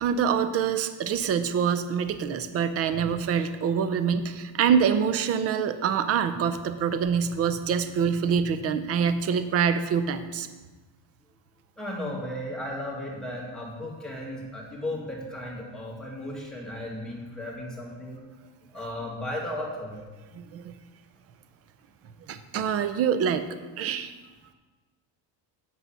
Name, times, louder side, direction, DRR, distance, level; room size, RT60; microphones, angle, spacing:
voice 1, 0.0-10.5 20.4-20.7 22.3-23.5 23.8-24.1, right 7 dB, 35° right, 11 dB, 0.4 m, -25 dB
voice 2, 11.8-18.2 18.7-20.0, left 1 dB, ahead, -4 dB, 1.6 m, -35 dB
8.4 x 5.5 x 5.6 m, 1.3 s
cardioid pair, 165°, 46 cm